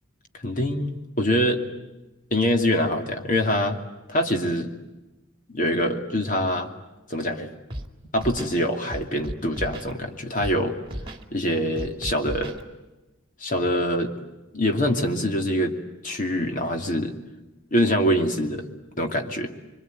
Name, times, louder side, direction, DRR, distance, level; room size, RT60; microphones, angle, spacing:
voice 1, 0.4-1.6 2.3-3.8 4.1-4.7 5.5-6.7 7.1-7.5 8.1-10.8 11.3-12.5 13.4-14.1 14.5-15.8 16.0-17.2 17.7-18.7 19.0-19.5, equal, 40° left, 4 dB, 2.7 m, -24 dB
Scratching (performance technique), 7.7-7.9 8.1-8.5 8.9-9.9 10.4-10.6 10.8-11.2 11.8-12.6, right 1 dB, 25° right, 2.3 m, -34 dB
25.5 x 25.0 x 9.3 m, 1.0 s
head